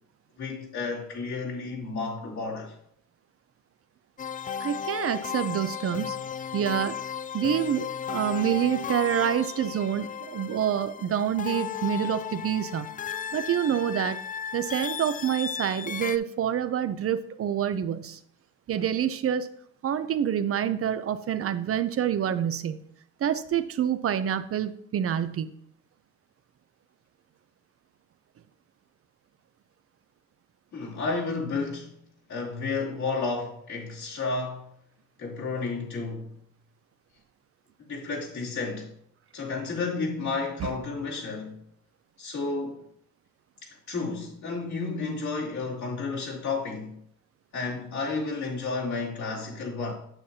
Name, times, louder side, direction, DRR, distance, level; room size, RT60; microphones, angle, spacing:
voice 1, 0.4-2.8 30.7-31.9 32.3-34.7 35.2-36.3 37.9-38.9 39.3-41.6 42.2-42.8 43.6-47.0 47.5-49.9, left 4 dB, 65° left, 3.2 m, -32 dB
sound 1, 4.2-16.2, left 8 dB, 30° left, 0.3 m, -35 dB
voice 2, 4.6-6.2 6.5-7.0 7.3-12.9 13.3-14.2 14.5-18.2 18.7-19.5 19.8-22.8 23.2-25.5, right 9 dB, 50° right, 0.6 m, -27 dB
9.0 x 7.2 x 2.8 m
cardioid pair, 90°, 30 cm